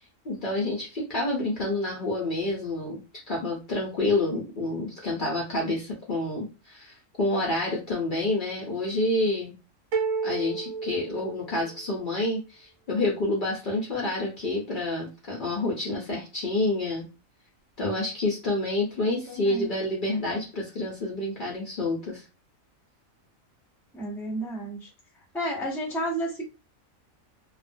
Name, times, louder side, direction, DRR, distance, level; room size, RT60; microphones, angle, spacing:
voice 1, 0.2-3.0 3.3-9.5 10.2-17.1 17.8-22.3, left 2 dB, 55° left, -3 dB, 0.6 m, -28 dB
sound 1, 9.9-11.9, right 5 dB, 75° right, 0.9 m, -31 dB
voice 2, 19.0-19.7 23.9-24.9 25.3-26.4, right 1 dB, 5° left, -3 dB, 0.4 m, -32 dB
2.4 x 2.1 x 2.4 m, 0.30 s
omnidirectional pair, 1.4 m